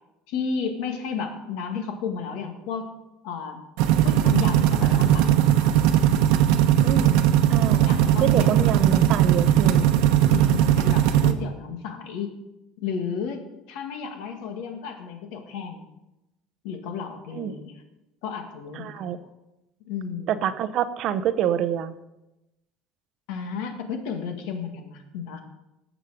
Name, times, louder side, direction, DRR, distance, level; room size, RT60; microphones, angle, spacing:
voice 1, 0.3-2.8 3.2-3.6 4.0-5.7 7.8-9.3 10.3-12.3 12.8-15.8 16.6-17.8 18.2-19.2 19.9-20.4 23.3-25.4, left 6 dB, 70° left, 5 dB, 2.1 m, -33 dB
sound 1, 3.8-11.3, right 11 dB, 70° right, 1.0 m, -19 dB
voice 2, 6.8-7.2 7.5-9.8 17.3-17.5 18.8-19.2 20.3-21.9, right 9 dB, 45° right, 13 dB, 0.7 m, -26 dB
18.0 x 7.2 x 5.1 m, 0.95 s
cardioid pair, 165°, 0 cm